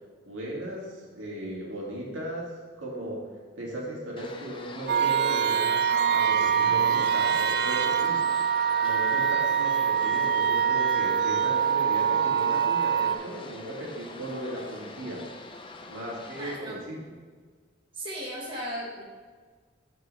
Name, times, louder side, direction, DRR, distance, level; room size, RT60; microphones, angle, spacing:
voice 1, 0.2-2.5 2.8-3.3 3.6-8.3 8.8-15.2 15.9-17.0, right 1 dB, 80° right, -4 dB, 2.3 m, -36 dB
sound 1, 4.2-16.6, left 3 dB, 25° left, 0.6 m, -44 dB
sound 2, 4.9-13.2, right 7 dB, 55° right, 0.5 m, -24 dB
voice 2, 16.3-16.8 17.9-19.0, equal, 25° right, -5 dB, 1.5 m, -36 dB
13.0 x 4.6 x 3.3 m, 1.5 s
head